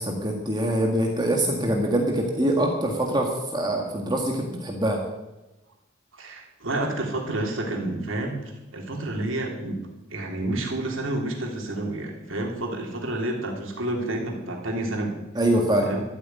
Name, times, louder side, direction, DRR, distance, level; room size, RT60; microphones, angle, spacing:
voice 1, 0.0-5.0 15.4-15.9, right 1 dB, 20° right, 1 dB, 1.7 m, -24 dB
voice 2, 6.2-8.4 8.7-9.8 10.1-15.2 15.8-16.0, right 1 dB, 85° right, 0 dB, 3.0 m, -29 dB
13.0 x 8.5 x 9.2 m, 0.99 s
head